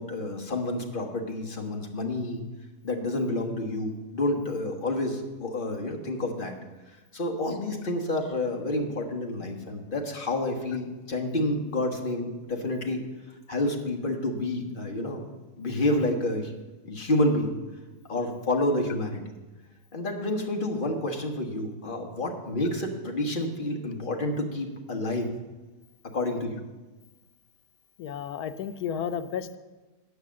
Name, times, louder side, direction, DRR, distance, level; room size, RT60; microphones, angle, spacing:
voice 1, 0.0-2.4 2.8-6.5 7.1-13.0 13.5-15.2 15.6-16.5 16.8-17.5 18.1-19.2 19.9-25.3 26.1-26.6, left 1 dB, 35° left, 2 dB, 1.3 m, -29 dB
voice 2, 28.0-29.6, left 8 dB, 85° left, 10 dB, 1.2 m, -32 dB
9.4 x 6.5 x 7.3 m, 1.2 s
omnidirectional pair, 1.6 m